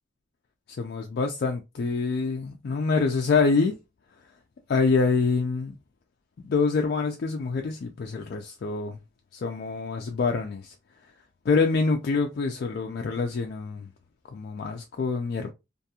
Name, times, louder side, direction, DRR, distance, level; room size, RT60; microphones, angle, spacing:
voice 1, 0.8-3.8 4.7-5.7 6.4-9.0 9.3-10.7 11.5-13.9 14.3-15.5, left 4 dB, 55° left, 0.4 m, -26 dB
2.8 x 2.5 x 2.3 m
head